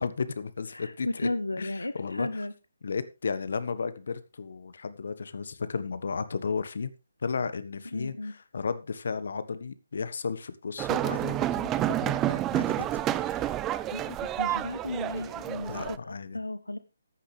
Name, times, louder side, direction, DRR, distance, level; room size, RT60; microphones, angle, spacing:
voice 1, 0.0-1.3 1.6-2.4 2.8-6.9 7.2-13.5 15.7-16.4, left 5 dB, 60° left, 13 dB, 1.4 m, -34 dB
voice 2, 0.7-2.5 7.9-8.3 13.9-16.8, left 2 dB, 85° left, 13 dB, 1.0 m, -34 dB
sound 1, 10.8-16.0, right 12 dB, 15° right, 0.5 m, -29 dB
14.5 x 10.0 x 3.4 m, 0.28 s
figure-of-eight pair, 145°, 0 cm